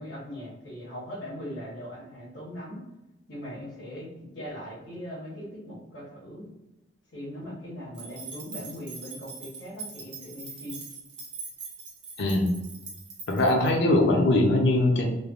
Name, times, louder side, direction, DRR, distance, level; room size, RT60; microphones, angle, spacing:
voice 1, 0.0-2.8 3.3-6.5 7.1-10.8, equal, 85° left, -9 dB, 1.0 m, -40 dB
sound 1, 7.9-13.7, right 5 dB, 80° right, 0.8 m, -42 dB
voice 2, 12.2-12.5 13.3-15.1, left 1 dB, 65° left, 1 dB, 0.5 m, -21 dB
3.2 x 2.1 x 2.4 m, 0.97 s
head